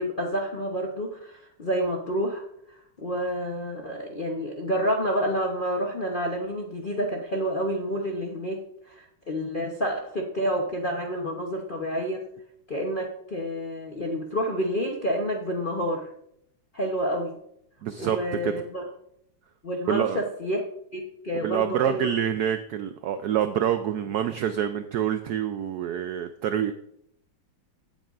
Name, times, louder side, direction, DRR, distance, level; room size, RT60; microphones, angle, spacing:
voice 1, 0.0-2.4 2.7-8.6 8.9-12.2 12.7-16.1 16.7-17.4 18.0-18.8 19.6-20.6 20.9-22.0, equal, 45° left, -1 dB, 0.6 m, -29 dB
voice 2, 17.8-18.2 18.4-18.6 19.9-20.2 21.3-26.7, right 10 dB, 80° right, 9 dB, 0.8 m, -26 dB
16.5 x 7.8 x 2.5 m, 0.74 s
omnidirectional pair, 2.2 m